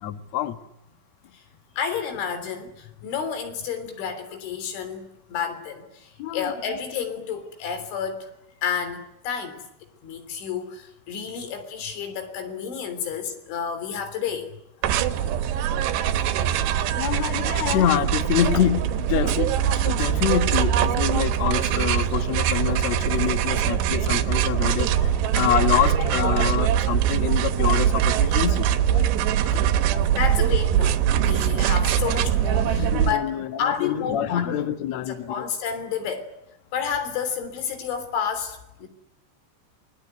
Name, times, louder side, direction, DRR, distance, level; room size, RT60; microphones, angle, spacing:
voice 1, 0.0-0.6 6.2-6.5 15.2-15.3 15.7-15.8 17.0-19.6 19.8-29.1 29.4-30.2 32.1-32.2 32.6-35.5, left 11 dB, 70° left, 10 dB, 1.6 m, -26 dB
voice 2, 1.8-8.3 8.6-9.6 10.0-14.5 15.3-15.4 16.6-16.9 20.0-20.1 30.1-33.3 33.6-34.6 35.1-36.3 36.7-38.9, left 7 dB, 90° left, 9 dB, 5.9 m, -30 dB
sound 1, 14.8-33.1, right 10 dB, 75° right, 3.2 m, -22 dB
28.0 x 21.0 x 9.5 m, 0.85 s
omnidirectional pair, 5.3 m